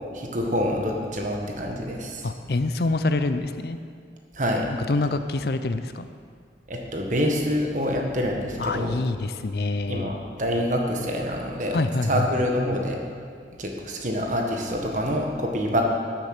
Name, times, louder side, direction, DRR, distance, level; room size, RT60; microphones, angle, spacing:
voice 1, 0.1-2.3 4.3-4.7 6.7-8.9 9.9-11.8 12.1-13.0 13.6-15.8, equal, 45° right, 1 dB, 1.6 m, -26 dB
voice 2, 2.2-3.8 4.9-6.1 8.6-10.2 11.7-12.3, left 2 dB, 60° left, 10 dB, 0.6 m, -26 dB
13.0 x 7.7 x 6.7 m, 2.2 s
head